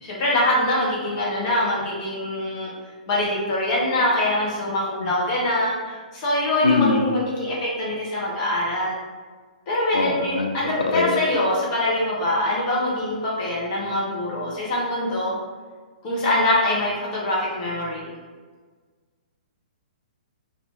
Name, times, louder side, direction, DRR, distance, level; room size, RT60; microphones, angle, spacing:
voice 1, 0.0-2.7 3.1-8.9 9.7-15.3 16.0-18.1, left 1 dB, 35° left, -6 dB, 1.0 m, -24 dB
voice 2, 6.6-7.0 9.9-10.5 10.9-11.1, left 4 dB, 70° left, 4 dB, 0.4 m, -21 dB
3.3 x 2.4 x 3.4 m, 1.5 s
figure-of-eight pair, 115°, 4 cm